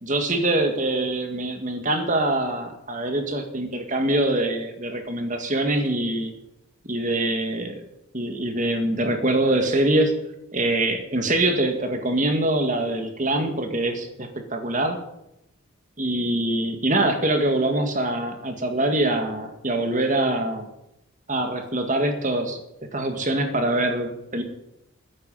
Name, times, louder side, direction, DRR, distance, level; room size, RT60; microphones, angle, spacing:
voice 1, 0.0-6.3 6.8-7.9 8.1-10.2 10.5-15.0 16.0-20.7 21.3-22.6 22.9-24.4, right 1 dB, 35° right, 5 dB, 2.0 m, -24 dB
21.0 x 10.5 x 5.6 m, 0.86 s
head